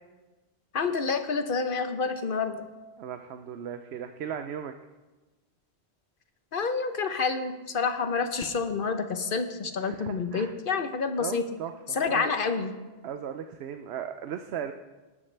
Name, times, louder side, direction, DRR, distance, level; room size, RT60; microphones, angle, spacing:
voice 1, 0.7-2.6 6.5-11.4 11.9-12.7, left 5 dB, 55° left, 8 dB, 1.1 m, -28 dB
voice 2, 3.0-4.7 9.8-10.5 11.2-12.3 13.0-14.7, right 8 dB, 80° right, 8 dB, 0.9 m, -37 dB
18.0 x 12.5 x 3.3 m, 1.2 s
omnidirectional pair, 1.1 m